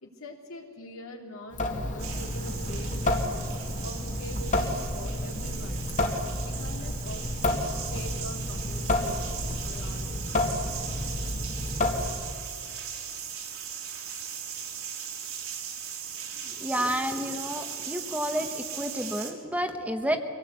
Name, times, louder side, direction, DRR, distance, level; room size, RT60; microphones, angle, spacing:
voice 1, 0.0-3.4 3.8-5.9 6.4-9.2 9.5-10.4, left 1 dB, 75° left, 1 dB, 3.0 m, -43 dB
Water tap faucet / Sink (filling or washing) / Drip, 1.5-12.4, left 1 dB, 35° left, 1.9 m, -30 dB
sound 1, 2.0-19.3, right 8 dB, 75° right, 3.2 m, -39 dB
voice 2, 16.5-20.2, equal, 5° right, 5 dB, 1.1 m, -30 dB
24.5 x 17.5 x 8.3 m, 2.2 s
head